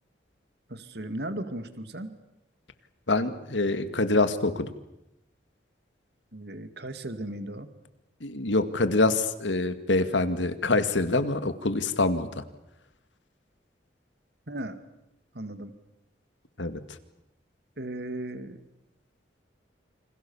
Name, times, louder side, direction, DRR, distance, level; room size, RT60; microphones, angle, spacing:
voice 1, 0.7-2.1 6.3-7.7 14.5-14.8 15.3-15.7 17.8-18.6, right 1 dB, 60° right, 9 dB, 2.3 m, -36 dB
voice 2, 3.1-4.7 8.2-12.4 16.6-16.8, left 2 dB, 80° left, 10 dB, 2.1 m, -25 dB
29.0 x 26.5 x 7.2 m, 0.85 s
head